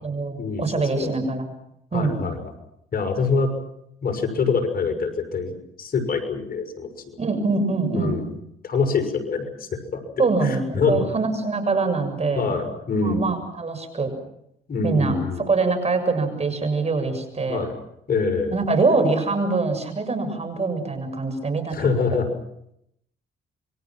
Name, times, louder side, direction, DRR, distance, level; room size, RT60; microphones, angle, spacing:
voice 1, 0.0-1.5 1.9-2.2 7.2-8.2 10.2-12.5 13.0-14.1 14.8-17.6 18.5-21.9, right 3 dB, 35° right, 7 dB, 7.1 m, -24 dB
voice 2, 1.9-2.4 2.9-3.5 4.0-5.5 5.8-6.9 7.9-8.2 8.6-10.0 10.4-11.0 12.3-13.3 14.7-15.5 17.5-17.7 18.1-18.5 21.7-22.3, left 4 dB, 50° left, 5 dB, 6.1 m, -24 dB
28.0 x 24.0 x 6.1 m, 0.76 s
cardioid pair, 90°, 20 cm